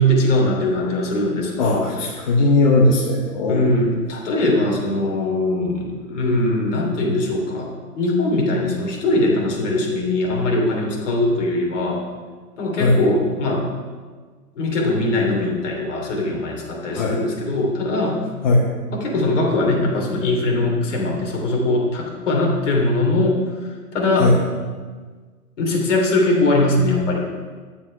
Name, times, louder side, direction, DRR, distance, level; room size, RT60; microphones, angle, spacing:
voice 1, 0.0-2.3 3.5-12.0 12.6-13.7 14.5-18.2 18.9-24.3 25.6-27.3, left 1 dB, 50° left, -1 dB, 3.0 m, -21 dB
voice 2, 1.6-3.7 12.8-13.0 16.9-17.2 18.4-18.6 24.2-24.3, left 2 dB, 30° left, -2 dB, 1.0 m, -18 dB
10.5 x 7.3 x 5.4 m, 1.5 s
hypercardioid pair, 160°, 48 cm